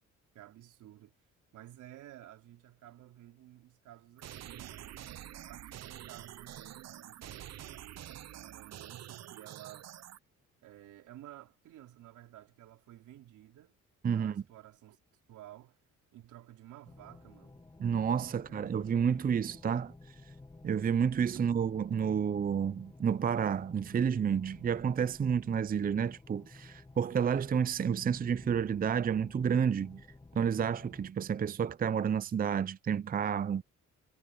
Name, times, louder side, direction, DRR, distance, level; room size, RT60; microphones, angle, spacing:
voice 1, 0.3-1.1 1.5-5.0 5.5-9.9 10.6-13.7 14.1-15.0 15.3-15.8 16.1-17.6 18.3-18.7, right 13 dB, 85° right, 3.4 m, -53 dB
sound 1, 4.2-10.2, right 11 dB, 60° right, 0.8 m, -47 dB
voice 2, 14.0-14.4 17.8-19.9 20.6-30.1 30.4-33.6, right 7 dB, 30° right, 0.6 m, -30 dB
sound 2, 16.9-31.1, left 2 dB, 15° left, 1.1 m, -53 dB
cardioid pair, 90°, 30 cm